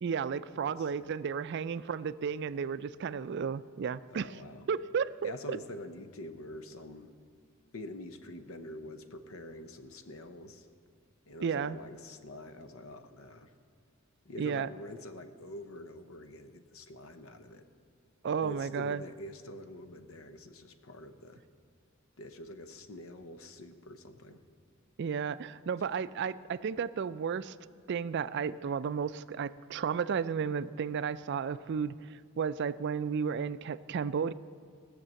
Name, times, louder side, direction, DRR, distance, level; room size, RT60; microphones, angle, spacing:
voice 1, 0.0-4.4 4.7-5.6 11.4-11.8 14.4-14.7 18.2-19.0 25.0-27.5 27.9-34.3, right 6 dB, 55° right, 16 dB, 0.3 m, -33 dB
voice 2, 0.5-0.9 4.1-4.7 5.2-7.1 7.7-10.7 11.3-13.5 14.2-17.6 18.4-21.4 22.2-24.4 25.8-25.9, left 1 dB, 85° left, 9 dB, 0.9 m, -46 dB
17.0 x 6.6 x 7.5 m, 2.1 s
head